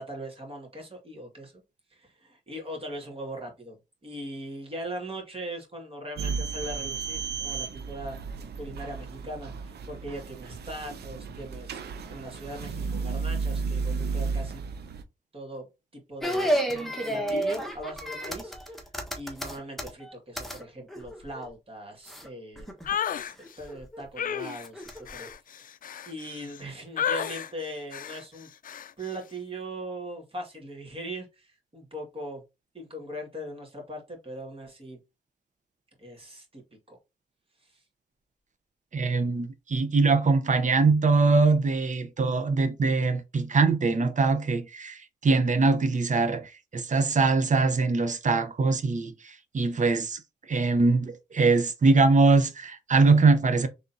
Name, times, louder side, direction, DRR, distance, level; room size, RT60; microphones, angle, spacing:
voice 1, 0.0-1.5 1.9-3.8 4.0-8.2 8.6-11.8 12.1-14.6 15.3-15.6 15.9-16.5 17.1-18.9 19.1-22.7 23.0-23.1 23.6-25.3 26.0-28.5 29.0-32.4 32.7-35.0 36.0-36.6 36.9-37.0 37.6-37.8, right 1 dB, 35° right, 2.1 m, -40 dB
sound 1, 6.2-15.0, right 5 dB, 85° right, 0.6 m, -33 dB
sound 2, 16.2-20.6 20.9-21.4 22.1-22.3 22.6-22.9 23.4-24.0 24.6-25.3, right 1 dB, ahead, 1.3 m, -31 dB
sound 3, 22.9-23.3 24.2-26.6 27.0-27.5 27.9-28.2 28.6-28.9, left 8 dB, 60° left, 0.4 m, -32 dB
voice 2, 38.9-49.1 49.5-50.2 50.5-53.7, right 3 dB, 50° right, 0.8 m, -22 dB
3.8 x 3.5 x 2.7 m
cardioid pair, 60°, 16 cm